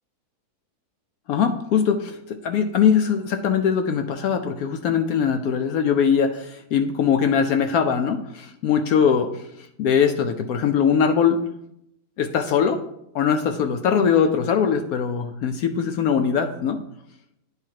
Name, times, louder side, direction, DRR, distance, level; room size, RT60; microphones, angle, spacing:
voice 1, 1.3-11.4 12.2-12.8 13.1-16.8, left 7 dB, 75° left, 5 dB, 1.0 m, -21 dB
9.6 x 3.5 x 4.5 m, 0.78 s
omnidirectional pair, 1.7 m